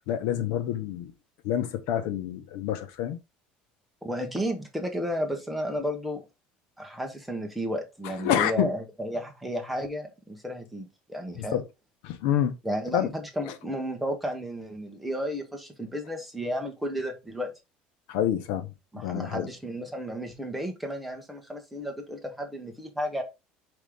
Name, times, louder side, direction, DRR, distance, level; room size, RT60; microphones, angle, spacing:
voice 1, 0.1-1.1 1.4-3.2 8.2-8.7 11.4-11.6 12.0-12.5 12.9-13.1 18.1-18.7 19.0-19.5, left 10 dB, 80° left, 1.0 m, -27 dB
voice 2, 4.0-6.2 6.8-11.6 12.6-17.5 18.9-23.2, equal, ahead, 1.1 m, -33 dB
5.3 x 4.9 x 3.7 m
cardioid pair, 175°, 3 cm